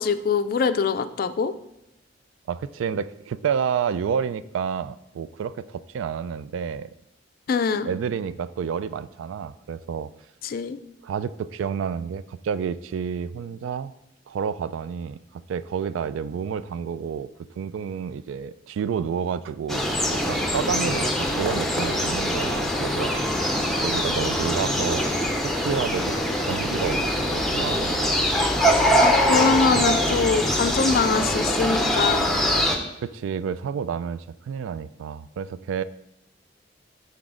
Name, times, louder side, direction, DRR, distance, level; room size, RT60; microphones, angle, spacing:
voice 1, 0.0-1.5 7.5-7.9 10.4-10.8 29.0-32.3, left 5 dB, 50° left, 11 dB, 0.3 m, -23 dB
voice 2, 2.5-6.9 7.6-10.1 11.0-13.9 14.3-17.3 17.6-19.8 20.1-25.2 25.4-28.4 28.7-29.0 29.8-29.9 33.0-35.8, right 7 dB, 85° right, 16 dB, 0.3 m, -30 dB
sound 1, 19.7-32.8, equal, ahead, 0.6 m, -23 dB
6.0 x 4.2 x 4.9 m, 0.83 s
head